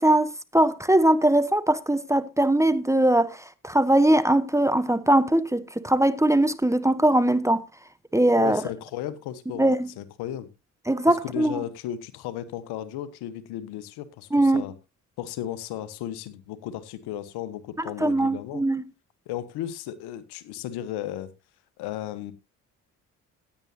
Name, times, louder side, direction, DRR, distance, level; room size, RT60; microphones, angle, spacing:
voice 1, 0.0-3.4 3.6-7.6 8.1-8.6 9.6-9.9 10.9-11.6 14.3-14.6 17.8-18.8, right 1 dB, 5° right, 1.0 m, -21 dB
voice 2, 8.4-9.7 10.0-10.5 11.1-14.7 15.2-18.6 19.3-21.3 21.8-22.3, left 11 dB, 70° left, 1.4 m, -35 dB
16.0 x 9.9 x 2.9 m
hypercardioid pair, 50°, 40 cm